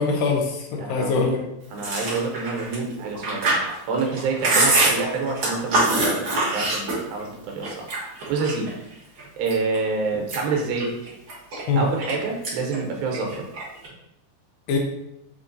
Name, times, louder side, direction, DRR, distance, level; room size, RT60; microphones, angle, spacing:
voice 1, 0.0-1.4 11.7-11.9 14.7-14.8, left 4 dB, 80° left, 1 dB, 2.2 m, -23 dB
voice 2, 0.8-1.3 1.7-3.6 3.9-7.9 8.3-8.9 9.4-10.9 11.8-13.4, right 4 dB, 85° right, 1 dB, 2.6 m, -27 dB
Chewing mastication, 1.8-7.3 7.6-8.7 9.2-9.8 10.1-12.1 12.4-12.8 13.0-13.9, right 2 dB, 65° right, 1.2 m, -24 dB
5.9 x 2.9 x 2.6 m, 0.86 s
omnidirectional pair, 4.2 m